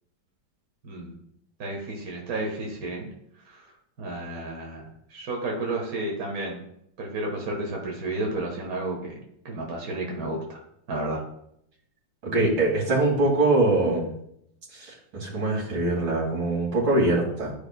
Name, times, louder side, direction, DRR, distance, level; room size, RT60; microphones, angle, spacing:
voice 1, 0.8-1.1 1.6-3.1 3.5-3.6 4.0-6.6 7.0-10.6 10.9-11.2, right 2 dB, 50° right, -1 dB, 1.7 m, -32 dB
voice 2, 12.2-14.1 14.8-17.5, right 2 dB, 80° right, -4 dB, 3.1 m, -23 dB
12.0 x 5.1 x 2.2 m, 0.73 s
omnidirectional pair, 2.1 m